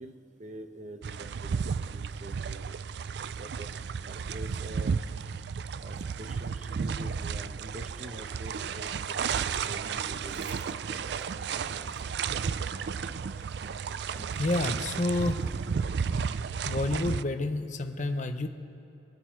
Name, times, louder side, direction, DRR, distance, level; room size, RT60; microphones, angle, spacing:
voice 1, 0.0-2.7 3.4-3.7 4.1-5.0 5.8-10.6, right 1 dB, 40° right, 6 dB, 0.9 m, -45 dB
sound 1, 1.0-17.2, right 6 dB, 60° right, 0.4 m, -33 dB
sound 2, 7.0-7.2 8.0-9.5 10.4-11.9 12.8-14.3 15.1-16.5, right 1 dB, 10° right, 1.4 m, -54 dB
sound 3, 10.0-13.0 13.3-14.7 15.3-15.5, right 5 dB, 75° right, 1.1 m, -50 dB
voice 2, 14.4-15.5 16.6-18.5, left 2 dB, 40° left, 6 dB, 0.9 m, -29 dB
25.5 x 9.6 x 4.6 m, 2.9 s
head